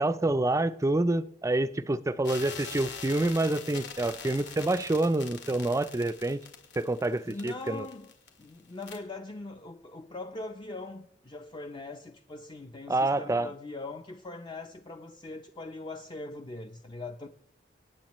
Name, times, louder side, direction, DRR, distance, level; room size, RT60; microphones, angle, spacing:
voice 1, 0.0-6.4 6.8-7.9 12.9-13.5, right 2 dB, 15° right, 0.4 m, -27 dB
sound 1, 2.2-8.5 8.8-9.0, left 6 dB, 80° left, 2.1 m, -43 dB
voice 2, 7.2-8.1 8.4-17.3, left 2 dB, 25° left, 0.6 m, -41 dB
25.5 x 9.3 x 3.0 m
head